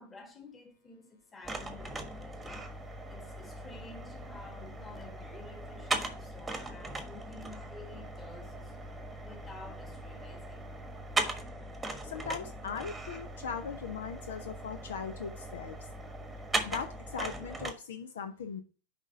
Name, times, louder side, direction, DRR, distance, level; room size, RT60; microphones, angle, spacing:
voice 1, 0.0-2.7 3.1-8.8 9.2-10.7, left 3 dB, 15° left, 1.7 m, -51 dB
sound 1, 1.4-17.7, right 2 dB, 10° right, 1.2 m, -39 dB
voice 2, 12.0-15.8 16.6-18.6, left 6 dB, 60° left, 0.7 m, -39 dB
6.3 x 5.2 x 5.7 m
figure-of-eight pair, 90°, 0 cm